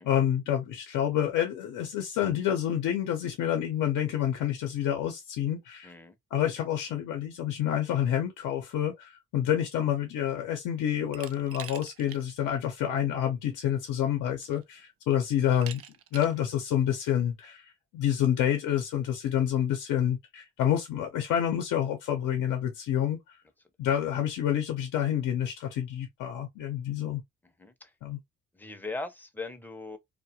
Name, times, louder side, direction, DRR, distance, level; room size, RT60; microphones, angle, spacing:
voice 1, 0.0-5.9 6.3-15.8 16.1-23.4 23.8-27.2 28.0-28.2, left 10 dB, 90° left, 0.6 m, -28 dB
voice 2, 5.8-6.1 27.6-27.9 28.6-30.0, left 3 dB, 5° left, 0.5 m, -39 dB
Glass, 11.1-12.2 12.6-12.7 13.9-14.0 14.4-14.8 15.6-16.4, right 9 dB, 50° right, 0.5 m, -44 dB
2.3 x 2.1 x 2.7 m
cardioid pair, 90°, 30 cm